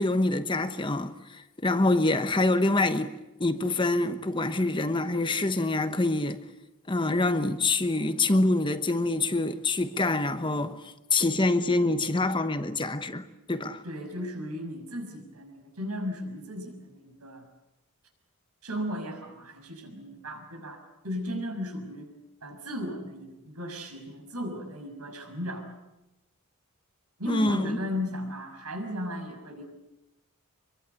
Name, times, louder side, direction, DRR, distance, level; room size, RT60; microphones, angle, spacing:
voice 1, 0.0-3.1 3.4-6.4 6.9-10.8 11.1-13.8 27.3-27.8, left 2 dB, 20° left, 1.0 m, -26 dB
voice 2, 13.8-17.4 18.6-22.1 22.4-25.7 27.2-29.6, equal, 85° right, 6.3 m, -36 dB
25.5 x 22.5 x 8.2 m
head